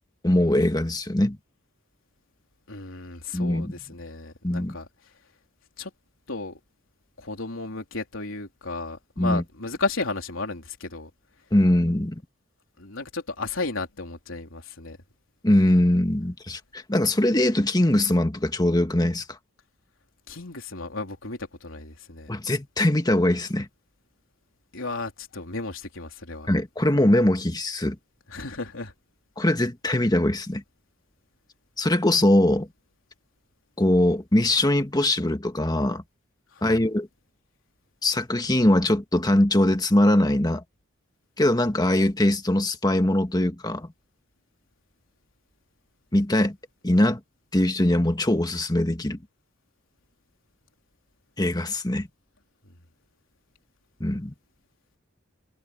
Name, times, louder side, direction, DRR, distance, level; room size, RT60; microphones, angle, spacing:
voice 1, 0.2-1.4 3.3-3.7 4.4-4.7 9.2-9.4 11.5-12.2 15.4-19.4 22.3-23.7 26.5-28.0 29.4-30.6 31.8-32.7 33.8-36.0 36.6-37.1 38.0-40.6 41.4-43.9 46.1-46.5 46.8-47.2 47.5-49.2 51.4-52.1 54.0-54.3, left 1 dB, 20° left, 1.7 m, -22 dB
voice 2, 2.7-4.9 5.8-5.9 6.3-6.6 7.2-11.1 12.8-15.0 20.3-22.3 24.7-26.5 28.3-28.9 36.5-36.8, left 3 dB, 80° left, 3.6 m, -34 dB
head